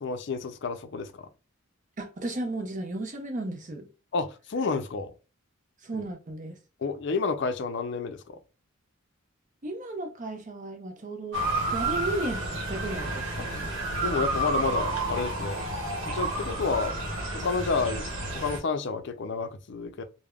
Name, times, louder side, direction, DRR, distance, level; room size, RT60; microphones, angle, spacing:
voice 1, 0.0-1.1 4.1-5.1 6.8-8.4 14.0-15.6 16.1-17.0 17.3-18.1 18.3-20.0, left 4 dB, 55° left, 0.4 m, -30 dB
voice 2, 2.0-3.9 5.8-6.6 9.6-11.4 11.7-13.7, right 2 dB, 40° right, 0.6 m, -34 dB
Motor vehicle (road) / Siren, 11.3-18.6, right 2 dB, 65° right, 0.9 m, -30 dB
3.3 x 2.1 x 2.3 m
head